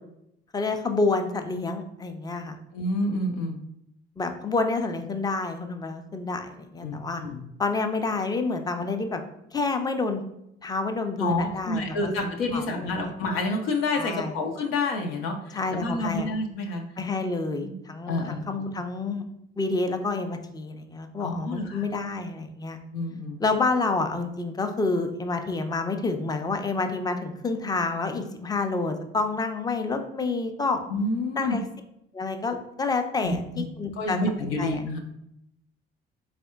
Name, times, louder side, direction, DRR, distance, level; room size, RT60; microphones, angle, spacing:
voice 1, 0.5-2.6 4.2-7.2 7.6-9.2 9.5-10.2 10.6-12.1 12.5-13.1 14.0-14.3 15.5-16.3 17.0-19.2 19.6-22.8 23.4-30.8 31.4-31.6 32.1-34.2 34.6-34.8, left 3 dB, 15° left, 6 dB, 0.5 m, -28 dB
voice 2, 2.7-3.6 6.8-7.4 11.2-16.8 17.6-17.7 18.1-18.7 21.2-21.9 22.9-23.4 30.9-31.6 33.2-33.6 34.0-35.0, left 2 dB, 70° left, 3 dB, 0.6 m, -29 dB
4.2 x 3.2 x 2.3 m, 0.79 s
figure-of-eight pair, 50°, 31 cm